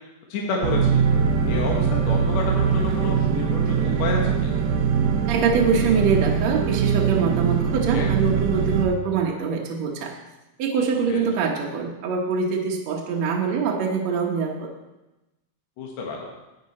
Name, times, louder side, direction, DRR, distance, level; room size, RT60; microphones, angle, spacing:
voice 1, 0.3-1.0 1.5-4.5 7.9-8.1 11.1-11.2 15.8-16.3, left 4 dB, 65° left, -1 dB, 2.3 m, -29 dB
sound 1, 0.6-8.9, right 6 dB, 80° right, 2.3 m, -22 dB
voice 2, 5.3-10.1 10.6-14.7, right 5 dB, 65° right, -1 dB, 2.1 m, -24 dB
11.5 x 8.8 x 4.2 m, 1.0 s
omnidirectional pair, 3.6 m